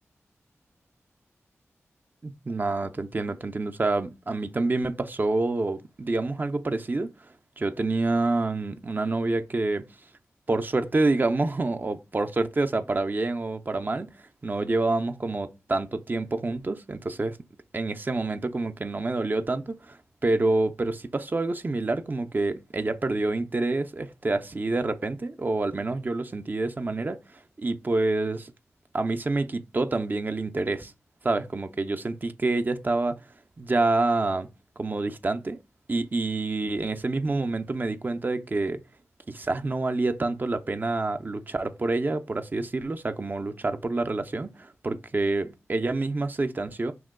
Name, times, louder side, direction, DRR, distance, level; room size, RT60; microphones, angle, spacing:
voice 1, 2.2-7.1 7.6-9.8 10.5-14.1 14.4-17.4 17.7-27.2 27.6-28.5 28.9-30.9 31.2-33.2 33.6-34.5 34.8-35.6 35.9-38.8 39.3-46.9, right 2 dB, 35° right, 0.4 m, -27 dB
2.9 x 2.2 x 3.5 m
cardioid pair, 45°, 5 cm